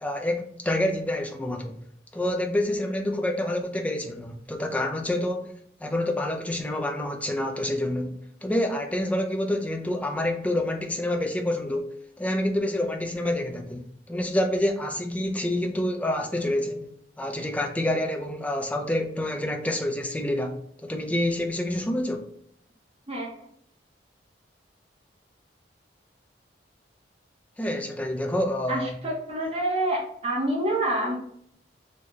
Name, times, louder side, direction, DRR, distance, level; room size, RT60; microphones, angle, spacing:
voice 1, 0.0-1.8 2.1-5.5 5.8-16.9 17.2-22.3 27.6-29.0, left 1 dB, 10° left, 0.3 m, -28 dB
voice 2, 23.1-23.5 28.7-31.1, right 1 dB, 30° right, 0.8 m, -27 dB
3.7 x 2.2 x 2.9 m
head